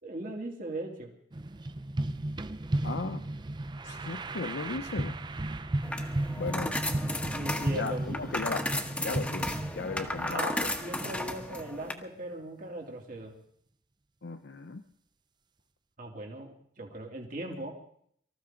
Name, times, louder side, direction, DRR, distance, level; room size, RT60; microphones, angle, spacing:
voice 1, 0.0-1.1 7.3-8.5 10.3-13.3 16.0-17.7, right 1 dB, 50° right, 0 dB, 2.6 m, -39 dB
sound 1, 1.3-11.7, right 1 dB, 25° right, 0.5 m, -35 dB
voice 2, 2.8-3.2 3.8-5.1 6.4-6.7 7.5-8.7 9.0-10.7 14.2-14.8, left 3 dB, 65° left, 7 dB, 0.7 m, -36 dB
sound 2, 5.8-11.9, left 1 dB, 5° left, 1.3 m, -34 dB
24.5 x 14.0 x 3.8 m, 0.66 s
head